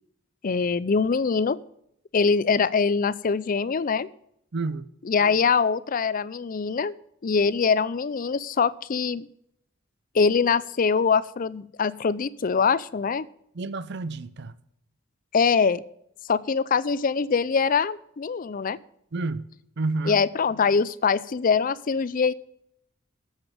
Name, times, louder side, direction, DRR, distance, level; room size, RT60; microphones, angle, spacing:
voice 1, 0.4-1.6 2.1-4.1 5.1-6.9 7.2-9.3 10.1-13.3 15.3-15.8 16.3-18.8 20.1-22.3, left 5 dB, 45° left, 0.5 m, -23 dB
voice 2, 4.5-4.9 13.5-14.5 19.1-19.5 19.8-20.2, right 3 dB, 60° right, 0.6 m, -29 dB
12.0 x 8.0 x 5.1 m
head